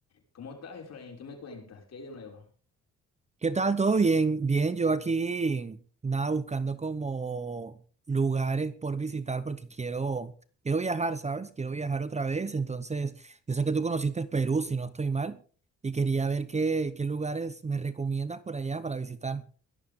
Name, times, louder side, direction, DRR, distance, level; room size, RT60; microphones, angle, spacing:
voice 1, 0.1-2.5, left 4 dB, 55° left, 6.1 m, -45 dB
voice 2, 3.4-7.8 8.1-10.3 10.6-15.4 15.8-19.4, right 4 dB, 20° right, 0.9 m, -29 dB
17.5 x 13.0 x 3.7 m
cardioid pair, 90°, 30 cm